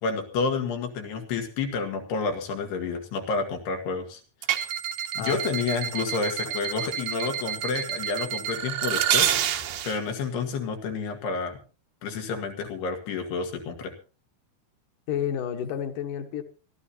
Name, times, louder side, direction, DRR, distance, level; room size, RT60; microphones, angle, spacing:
voice 1, 0.0-4.2 5.2-9.4 9.8-11.6 12.0-13.9, left 4 dB, 85° left, 4 dB, 4.0 m, -29 dB
sound 1, 4.4-10.0, right 10 dB, 70° right, 2.9 m, -28 dB
voice 2, 15.1-16.4, left 9 dB, 65° left, 7 dB, 2.6 m, -30 dB
25.5 x 13.0 x 2.8 m, 0.33 s
omnidirectional pair, 4.6 m